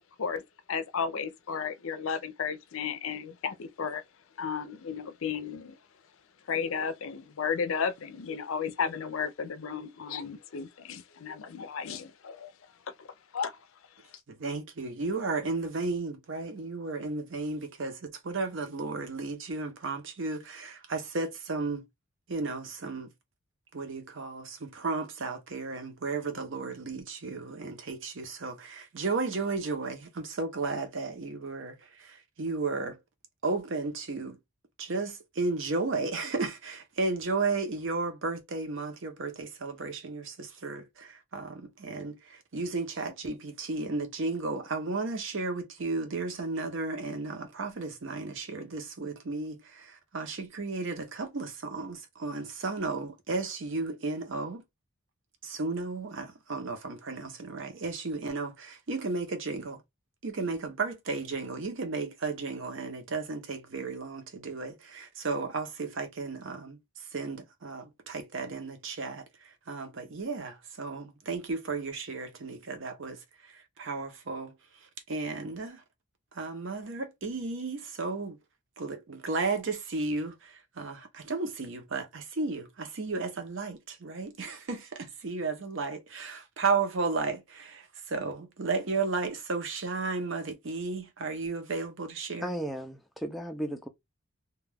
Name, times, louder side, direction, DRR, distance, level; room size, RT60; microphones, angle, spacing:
voice 1, 0.7-4.0 4.4-5.7 6.5-12.5 13.0-13.1 13.3-13.6, left 6 dB, 65° left, 0.5 m, -33 dB
voice 2, 14.3-21.8 22.3-23.1 23.7-33.0 33.4-34.4 34.8-54.6 55.4-59.8 60.2-75.8 76.3-78.4 78.8-92.5, right 3 dB, 55° right, 0.7 m, -34 dB
voice 3, 92.4-93.9, right 1 dB, ahead, 0.3 m, -35 dB
2.3 x 2.2 x 3.3 m
head